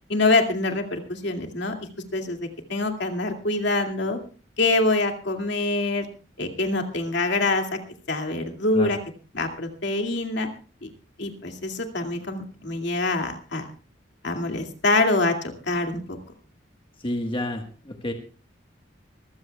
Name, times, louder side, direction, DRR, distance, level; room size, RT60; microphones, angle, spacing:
voice 1, 0.1-1.7 2.1-4.2 4.6-6.1 6.4-7.7 8.1-9.0 9.3-10.5 10.8-10.9 11.2-13.6 14.2-15.4 15.7-16.2, left 2 dB, 65° left, 4 dB, 2.4 m, -25 dB
voice 2, 17.0-18.1, left 1 dB, 30° left, 4 dB, 1.4 m, -30 dB
24.5 x 15.5 x 2.3 m, 0.36 s
head